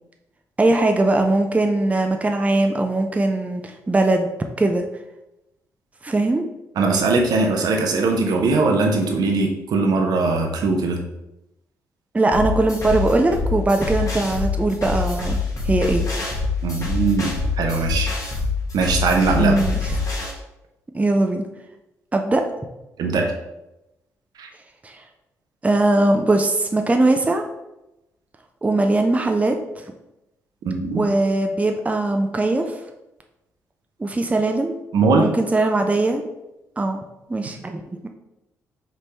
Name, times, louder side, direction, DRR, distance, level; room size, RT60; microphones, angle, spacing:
voice 1, 0.6-4.3 4.6-4.8 6.0-6.4 12.1-15.4 15.6-16.1 19.4-19.7 20.9-21.5 22.1-22.4 24.8-25.0 25.6-27.4 28.6-29.9 30.9-32.8 34.0-34.8 35.2-36.2 36.8-37.0 37.3-38.1, right 2 dB, 20° right, 4 dB, 0.5 m, -20 dB
voice 2, 6.8-11.0 16.6-18.1 18.7-19.5 23.0-23.3 24.4-24.5 30.6-31.0 34.9-35.3, right 3 dB, 60° right, 2 dB, 0.7 m, -20 dB
sound 1, 12.3-20.3, left 3 dB, 45° left, 1.5 m, -25 dB
5.2 x 3.1 x 2.9 m, 0.93 s
hypercardioid pair, 40°, 8 cm